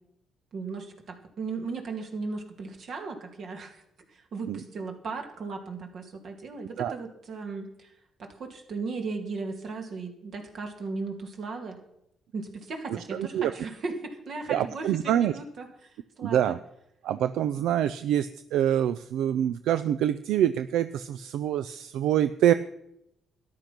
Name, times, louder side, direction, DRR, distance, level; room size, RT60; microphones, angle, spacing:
voice 1, 0.5-3.8 4.3-7.9 8.2-11.8 12.3-15.9 16.2-16.5, right 4 dB, 60° right, 4 dB, 2.6 m, -36 dB
voice 2, 13.1-13.5 14.5-15.4 16.2-16.6 17.0-22.5, right 11 dB, 85° right, 12 dB, 0.5 m, -25 dB
13.5 x 10.5 x 5.9 m, 0.79 s
cardioid pair, 90°, 0 cm